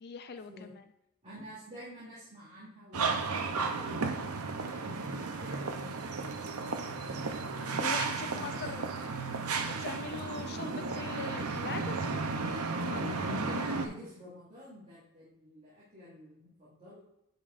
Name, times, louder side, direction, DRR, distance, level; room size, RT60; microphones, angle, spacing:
voice 1, 0.0-0.8 7.8-8.8 9.8-12.1 12.8-13.1, left 5 dB, 45° left, 9 dB, 0.4 m, -41 dB
voice 2, 1.2-4.2 4.7-6.7 7.5-8.9 13.1-17.0, left 1 dB, 30° right, -10 dB, 2.8 m, -48 dB
sound 1, 2.9-13.9, right 4 dB, 75° right, 0.8 m, -34 dB
10.5 x 5.4 x 2.6 m, 0.82 s
head